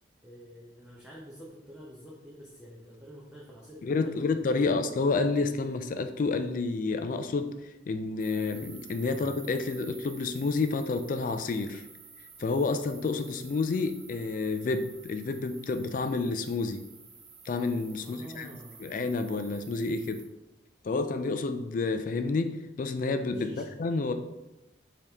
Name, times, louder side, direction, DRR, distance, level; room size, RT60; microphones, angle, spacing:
voice 1, 0.2-4.8 9.1-9.5 18.0-18.9 23.3-23.7, equal, 5° right, -6 dB, 0.6 m, -48 dB
voice 2, 3.8-7.5 7.9-11.9 12.4-16.8 17.5-18.5 18.8-20.2 20.8-24.1, left 3 dB, 45° left, 8 dB, 0.3 m, -29 dB
sound 1, 8.2-20.3, right 5 dB, 70° right, 0.9 m, -51 dB
5.1 x 2.8 x 3.5 m, 0.98 s
head